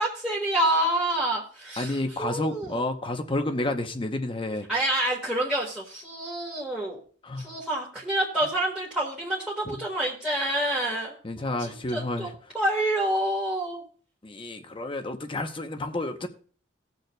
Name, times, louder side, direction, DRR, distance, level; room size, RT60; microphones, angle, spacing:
voice 1, 0.0-2.8 4.7-7.0 7.4-12.3 12.5-13.8, right 1 dB, 5° right, 1.6 m, -28 dB
voice 2, 1.8-4.7 7.2-7.6 11.2-12.3 14.2-16.3, left 2 dB, 30° left, 0.8 m, -30 dB
19.5 x 6.6 x 2.3 m
head